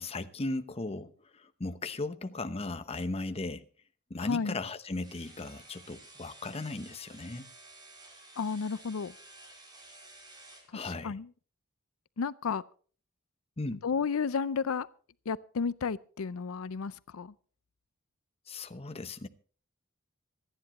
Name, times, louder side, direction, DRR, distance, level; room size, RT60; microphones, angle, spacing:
voice 1, 0.0-3.6 4.1-7.5 10.7-11.2 13.6-13.8 18.5-19.3, left 2 dB, 30° left, 0.9 m, -37 dB
voice 2, 4.2-4.6 8.4-9.1 10.7-11.3 12.2-12.6 13.8-14.9 15.3-17.3, left 5 dB, 90° left, 0.5 m, -32 dB
sound 1, 5.0-10.7, right 2 dB, 20° right, 4.2 m, -53 dB
26.0 x 10.0 x 3.1 m
head